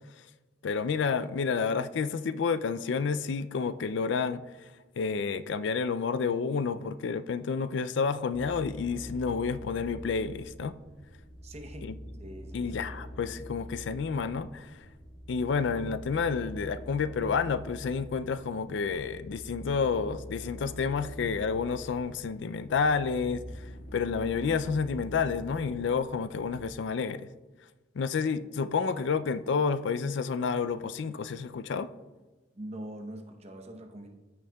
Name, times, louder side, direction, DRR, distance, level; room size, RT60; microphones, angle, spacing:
voice 1, 0.6-4.4 5.0-10.8 11.8-11.9 12.5-14.7 15.3-27.3 28.0-31.9, left 5 dB, 65° left, 13 dB, 0.4 m, -30 dB
sound 1, 8.3-26.8, equal, 50° left, 1.4 m, -45 dB
voice 2, 11.4-11.9 12.2-12.7 32.5-34.1, right 1 dB, 35° right, 3 dB, 0.8 m, -43 dB
14.0 x 6.3 x 2.3 m, 1.2 s
head